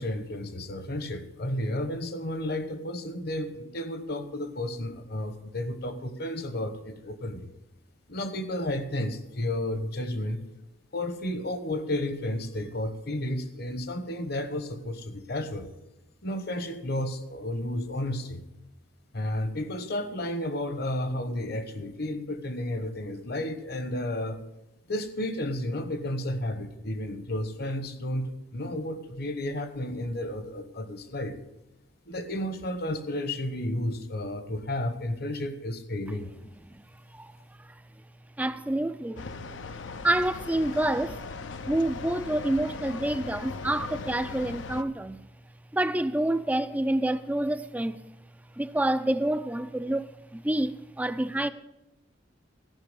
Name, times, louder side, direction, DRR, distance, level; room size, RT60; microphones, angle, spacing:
voice 1, 0.0-7.5 8.1-10.5 10.9-15.7 16.2-18.4 19.1-24.4 24.9-31.4 32.1-36.3, left 1 dB, 55° left, 1.1 m, -32 dB
voice 2, 38.4-39.3 40.0-41.2 41.7-45.2 45.7-48.0 48.6-51.5, right 1 dB, 10° right, 0.4 m, -28 dB
sound 1, 39.2-44.8, left 4 dB, 80° left, 0.6 m, -39 dB
14.5 x 5.9 x 8.2 m
head